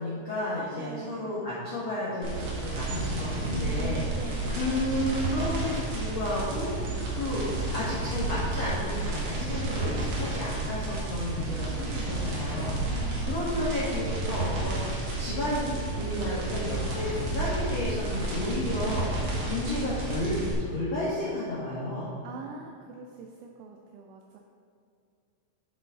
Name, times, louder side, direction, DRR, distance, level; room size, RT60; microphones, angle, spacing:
voice 1, 0.0-7.4 7.7-22.2, left 1 dB, 85° left, -8 dB, 1.4 m, -32 dB
voice 2, 0.8-1.5 3.4-4.5 12.9-13.4 22.2-24.4, right 3 dB, 85° right, 1 dB, 2.5 m, -43 dB
sound 1, 2.2-20.5, right 2 dB, 55° right, 2.5 m, -31 dB
11.0 x 6.1 x 3.7 m, 2.5 s
omnidirectional pair, 5.7 m